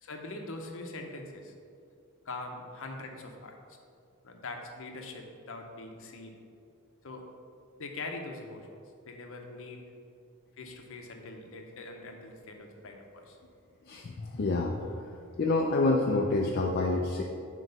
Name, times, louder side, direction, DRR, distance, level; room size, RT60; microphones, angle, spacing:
voice 1, 0.0-1.5 2.2-3.6 4.2-6.4 7.0-7.2 7.8-8.7 9.1-9.8 10.6-13.4, left 2 dB, 65° left, 3 dB, 0.8 m, -42 dB
voice 2, 13.9-15.0 15.4-17.2, left 2 dB, 45° left, 1 dB, 0.4 m, -27 dB
7.7 x 3.0 x 5.5 m, 2.4 s
head